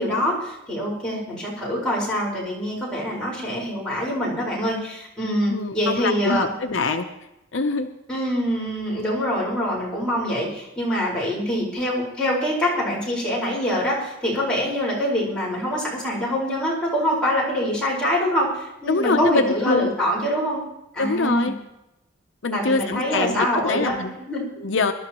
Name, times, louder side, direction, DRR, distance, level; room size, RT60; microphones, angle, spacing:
voice 1, 0.0-6.5 6.9-7.0 8.1-20.6 20.9-21.5 22.5-24.5, equal, 5° left, -7 dB, 4.6 m, -25 dB
voice 2, 5.5-7.1 7.5-7.9 18.9-19.9 21.0-21.5 22.4-24.2 24.6-24.9, left 3 dB, 70° left, 6 dB, 0.7 m, -24 dB
23.5 x 12.0 x 3.0 m, 0.90 s
head